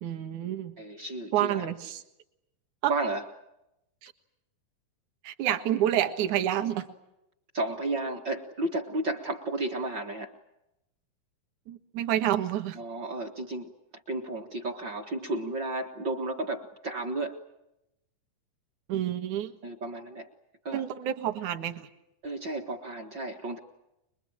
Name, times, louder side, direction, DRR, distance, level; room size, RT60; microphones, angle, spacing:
voice 1, 0.0-0.7 1.3-2.0 2.8-2.9 4.0-4.1 5.2-6.9 11.7-12.8 18.9-19.5 20.7-21.9, right 11 dB, 65° right, 8 dB, 2.7 m, -28 dB
voice 2, 0.8-1.7 2.9-3.2 5.4-5.5 7.5-10.3 12.7-13.7 14.1-17.4 19.6-20.3 20.6-20.8 22.2-23.6, right 2 dB, 45° right, 2 dB, 1.6 m, -33 dB
25.5 x 22.5 x 8.8 m, 0.88 s
omnidirectional pair, 4.0 m